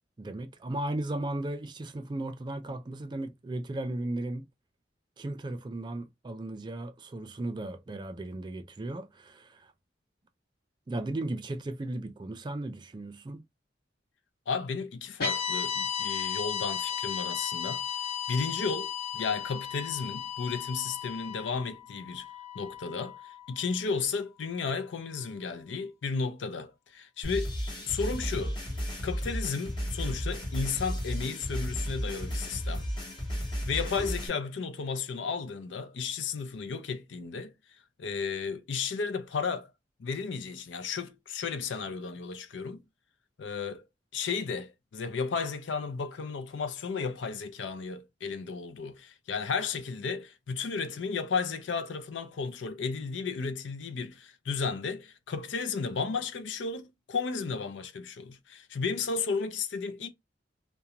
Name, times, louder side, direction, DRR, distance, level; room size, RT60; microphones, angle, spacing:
voice 1, 0.2-4.4 5.2-9.7 10.9-13.4, right 1 dB, 25° right, 0.3 m, -36 dB
voice 2, 14.5-17.8 18.3-22.3 22.5-27.5 27.9-28.6 29.0-32.9 33.7-37.5 38.0-39.7 40.0-42.8 43.4-43.8 44.1-60.1, left 5 dB, 85° left, 0.5 m, -33 dB
sound 1, 15.2-23.5, left 7 dB, 55° left, 1.1 m, -35 dB
sound 2, 27.2-34.3, equal, 25° left, 1.0 m, -33 dB
2.4 x 2.2 x 2.8 m
head